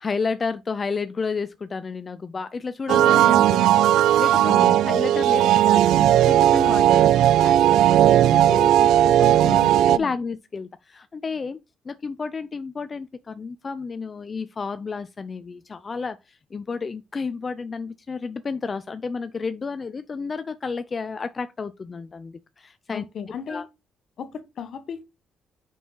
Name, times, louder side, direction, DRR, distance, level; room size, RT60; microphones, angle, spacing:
voice 1, 0.0-9.6 9.9-11.6 11.8-23.0 23.5-23.7, left 4 dB, 35° left, 0.5 m, -32 dB
sound 1, 2.9-10.0, right 12 dB, 85° right, 0.3 m, -17 dB
voice 2, 4.5-4.8 9.2-10.2 22.9-23.6 24.2-25.0, left 7 dB, 60° left, 1.2 m, -35 dB
6.0 x 5.6 x 3.8 m
cardioid pair, 90°, 0 cm